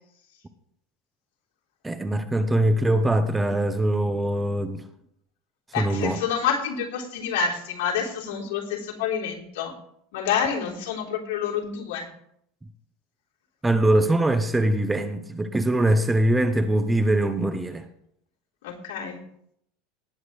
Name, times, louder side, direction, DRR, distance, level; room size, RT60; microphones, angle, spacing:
voice 1, 1.8-4.8 5.8-6.2 13.6-17.9, right 1 dB, 10° right, 11 dB, 0.8 m, -22 dB
voice 2, 5.7-9.7 10.1-12.1 18.6-19.2, left 7 dB, 80° left, -3 dB, 3.7 m, -28 dB
19.0 x 8.7 x 3.3 m, 0.73 s
supercardioid pair, 130°, 0 cm